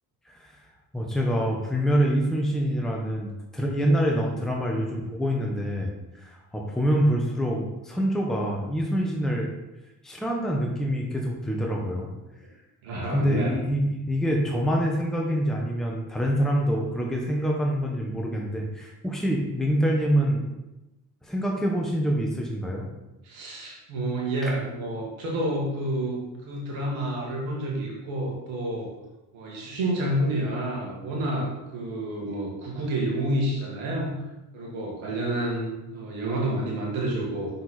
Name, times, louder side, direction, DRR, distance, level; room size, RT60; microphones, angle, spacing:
voice 1, 0.9-5.9 6.2-9.5 10.0-12.1 13.1-20.4 21.2-22.9 24.4-24.5, equal, ahead, -1 dB, 1.4 m, -26 dB
voice 2, 12.8-13.6 23.2-28.9 29.3-34.1 34.5-37.5, right 1 dB, 85° right, -3 dB, 2.2 m, -29 dB
6.2 x 5.0 x 4.4 m, 1.0 s
supercardioid pair, 55°, 45 cm